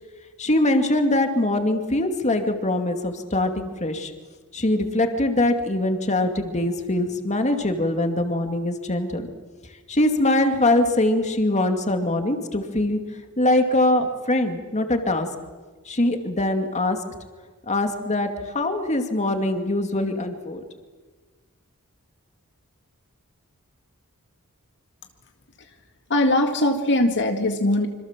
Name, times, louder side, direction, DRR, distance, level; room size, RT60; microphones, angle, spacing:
voice 1, 0.4-4.1 4.5-9.3 9.9-13.0 13.4-15.3 15.9-17.0 17.7-20.6, left 1 dB, 30° left, 6 dB, 2.5 m, -22 dB
voice 2, 26.1-27.9, left 1 dB, 55° left, 4 dB, 2.0 m, -21 dB
26.5 x 26.5 x 7.5 m, 1.4 s
head